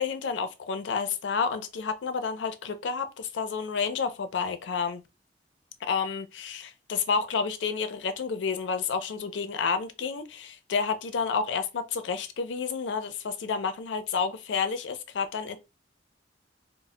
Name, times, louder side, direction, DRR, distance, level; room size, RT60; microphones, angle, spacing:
voice 1, 0.0-5.0 5.8-15.6, left 5 dB, 90° left, 0.4 m, -30 dB
2.1 x 2.0 x 3.6 m
head